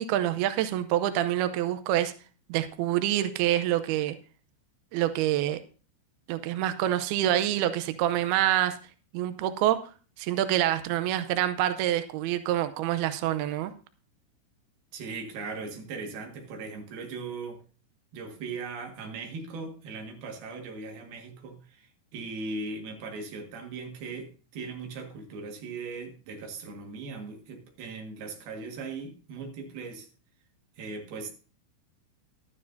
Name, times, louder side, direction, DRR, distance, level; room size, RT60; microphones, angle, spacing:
voice 1, 0.0-2.1 2.5-4.2 4.9-5.6 6.3-8.8 9.1-9.9 10.2-13.7, right 12 dB, 90° right, 2.2 m, -26 dB
voice 2, 14.9-17.6 18.1-30.1 30.8-31.3, right 4 dB, 60° right, 3.4 m, -39 dB
12.0 x 12.0 x 2.7 m
omnidirectional pair, 5.4 m